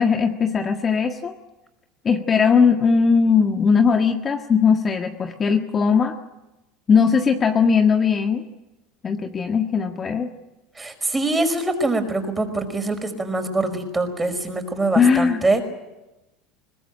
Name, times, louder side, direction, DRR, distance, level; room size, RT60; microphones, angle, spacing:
voice 1, 0.0-1.3 2.0-6.1 6.9-8.4 9.0-10.3 14.9-15.4, left 6 dB, 30° left, 4 dB, 1.7 m, -19 dB
voice 2, 10.8-15.6, right 2 dB, 15° right, 6 dB, 5.2 m, -24 dB
22.0 x 20.5 x 9.1 m, 1.0 s
hypercardioid pair, 75°, 0 cm